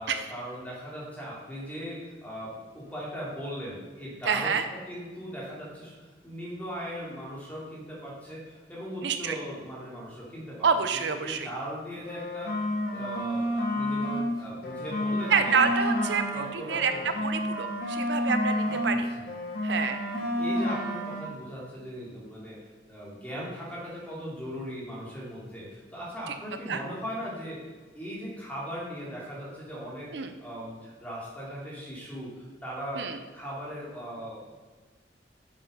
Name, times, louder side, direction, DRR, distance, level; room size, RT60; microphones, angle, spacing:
voice 1, 0.0-12.6 12.9-15.6 16.3-17.1 18.6-19.3 20.1-22.6 22.9-34.4, equal, 10° left, -6 dB, 2.7 m, -39 dB
voice 2, 4.3-4.6 9.0-9.4 10.6-11.5 15.3-16.9 17.2-19.1 19.6-20.0 26.7-26.8 30.1-30.3 33.0-33.2, right 5 dB, 75° right, 8 dB, 0.6 m, -27 dB
sound 1, 12.0-14.3 14.6-19.0 19.3-21.3, equal, 55° left, 1.5 m, -30 dB
7.6 x 6.9 x 5.5 m, 1.4 s
head